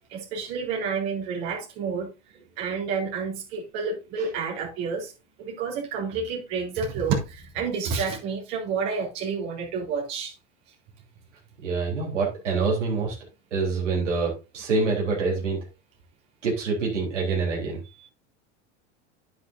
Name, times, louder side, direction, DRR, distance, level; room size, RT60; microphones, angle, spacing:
voice 1, 0.1-2.1 2.6-5.1 5.4-10.3, right 5 dB, 60° right, 4.0 m, -29 dB
voice 2, 11.6-13.2 13.5-15.6 16.4-17.8, right 4 dB, 85° right, 3.9 m, -26 dB
9.5 x 9.4 x 2.7 m
hypercardioid pair, 90°, 35 cm